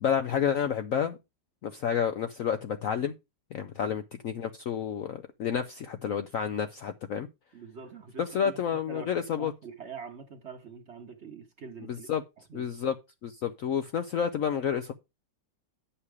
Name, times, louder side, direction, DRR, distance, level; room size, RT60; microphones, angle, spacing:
voice 1, 0.0-1.2 1.6-3.1 3.5-7.3 8.2-9.5 12.1-12.2 12.5-12.9 13.2-14.9, left 8 dB, 70° left, 0.8 m, -30 dB
voice 2, 7.5-12.1 12.5-12.6, right 5 dB, 45° right, 1.0 m, -45 dB
9.7 x 5.7 x 4.8 m
omnidirectional pair, 2.0 m